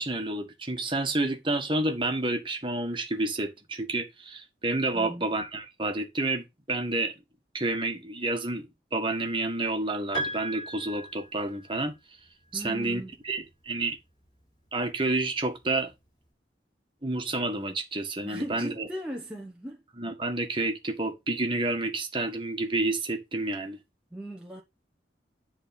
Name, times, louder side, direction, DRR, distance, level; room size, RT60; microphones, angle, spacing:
voice 1, 0.0-7.1 7.5-8.7 8.9-11.9 12.5-14.0 14.7-15.9 17.0-18.9 20.0-23.8, right 2 dB, 25° right, 1.7 m, -29 dB
voice 2, 4.9-5.3 12.5-13.1 18.2-19.8 24.1-24.6, right 1 dB, 5° right, 1.1 m, -38 dB
Piano, 10.1-11.8, right 1 dB, 25° left, 5.9 m, -36 dB
10.5 x 3.9 x 5.4 m
head